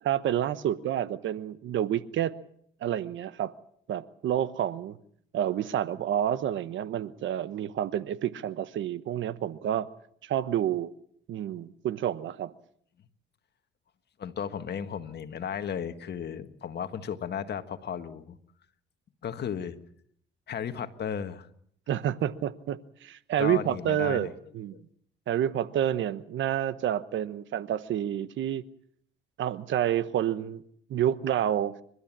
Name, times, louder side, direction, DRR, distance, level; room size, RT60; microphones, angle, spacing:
voice 1, 0.0-2.3 2.8-3.5 3.9-5.0 5.3-9.9 10.2-10.9 11.3-12.5 21.9-24.3 24.5-24.7 25.3-28.6 29.4-30.6 30.9-31.8, right 11 dB, 75° right, 1.0 m, -29 dB
voice 2, 14.2-18.4 19.2-19.8 20.5-21.5 23.4-24.3 24.7-24.8, left 8 dB, 55° left, 1.6 m, -34 dB
30.0 x 13.0 x 7.4 m
cardioid pair, 90°, 20 cm